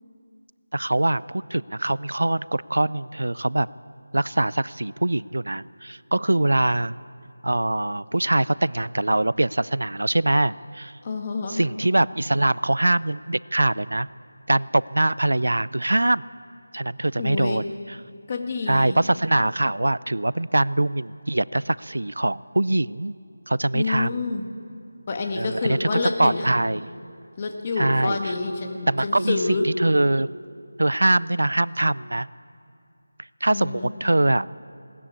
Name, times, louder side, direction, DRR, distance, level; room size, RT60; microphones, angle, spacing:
voice 1, 0.7-3.7 4.1-7.0 7.4-10.9 11.5-14.1 14.5-16.2 16.7-18.0 18.7-23.1 23.5-24.2 25.4-26.8 27.8-28.3 28.9-30.3 30.8-32.3 33.4-34.5, right 1 dB, 90° right, 20 dB, 0.5 m, -23 dB
voice 2, 11.0-11.6 17.2-17.6 18.3-19.0 23.7-24.5 25.1-26.5 27.4-29.7 33.5-33.9, left 3 dB, 25° left, 3 dB, 1.7 m, -28 dB
21.0 x 19.0 x 8.4 m, 2.5 s
figure-of-eight pair, 175°, 0 cm